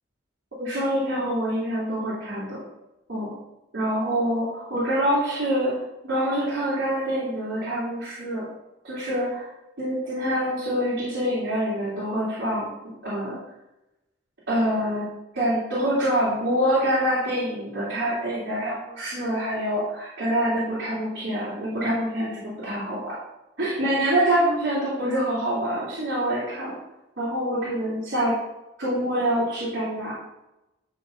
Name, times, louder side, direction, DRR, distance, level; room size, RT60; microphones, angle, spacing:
voice 1, 0.6-2.6 3.1-3.3 3.7-5.7 6.0-8.4 8.8-9.5 9.8-12.7 13.0-13.3 14.5-15.0 15.3-23.2 23.6-26.7 27.2-28.3 28.8-30.1, equal, 70° right, -10 dB, 3.0 m, -25 dB
11.0 x 3.7 x 5.4 m, 0.94 s
head